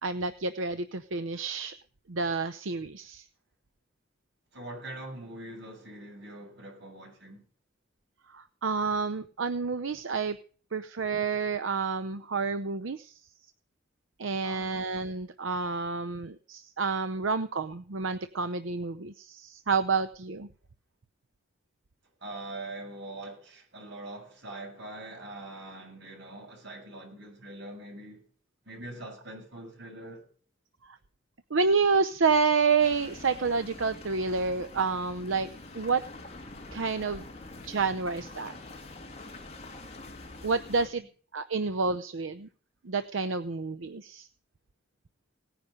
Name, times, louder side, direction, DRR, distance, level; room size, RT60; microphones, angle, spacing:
voice 1, 0.0-1.7 2.1-3.2 8.3-10.4 10.7-13.1 14.2-20.5 30.8-31.0 31.5-36.0 36.7-37.2 37.6-38.6 40.4-41.0 41.3-42.5 42.8-44.3, right 4 dB, 90° right, 0.8 m, -29 dB
voice 2, 4.5-7.4 14.4-14.7 22.2-28.2 28.7-30.3, right 1 dB, 65° right, 7.4 m, -43 dB
sound 1, 32.8-40.9, left 2 dB, 35° left, 2.8 m, -45 dB
18.0 x 10.5 x 5.2 m
head